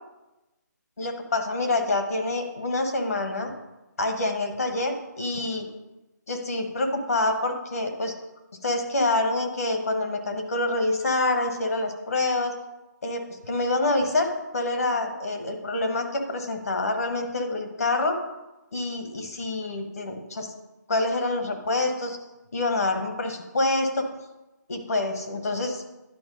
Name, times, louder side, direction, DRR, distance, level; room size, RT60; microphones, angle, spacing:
voice 1, 1.0-3.5 4.0-5.7 6.3-8.1 8.6-12.6 13.0-18.2 18.7-20.5 20.9-22.2 22.5-24.1 24.7-25.8, left 2 dB, 50° left, 5 dB, 1.2 m, -26 dB
9.8 x 4.4 x 5.2 m, 1.0 s
hypercardioid pair, 180°, 10 cm